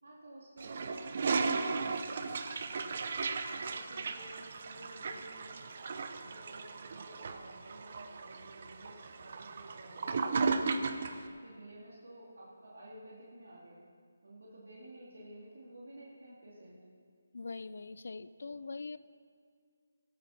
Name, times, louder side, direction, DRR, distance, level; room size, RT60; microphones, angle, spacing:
voice 1, 0.0-3.0 3.4-10.9 11.2-13.8 14.2-16.8, right 1 dB, 80° right, -5 dB, 2.8 m, -53 dB
Toilet flush, 0.6-11.2, right 4 dB, 45° right, 0.7 m, -36 dB
voice 2, 17.3-19.0, left 4 dB, 65° left, 15 dB, 0.5 m, -42 dB
13.5 x 12.5 x 4.3 m, 2.1 s
figure-of-eight pair, 160°, 0 cm